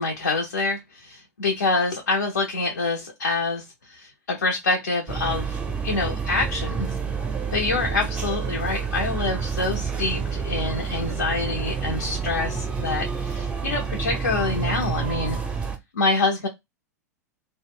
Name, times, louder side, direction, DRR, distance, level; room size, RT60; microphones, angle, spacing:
voice 1, 0.0-5.6 5.8-7.0 7.5-15.4 15.9-16.5, left 3 dB, 75° left, 1 dB, 0.5 m, -26 dB
sound 1, 5.1-15.8, right 6 dB, 10° right, 0.5 m, -28 dB
2.1 x 2.0 x 3.4 m, 0.19 s
figure-of-eight pair, 95°, 9 cm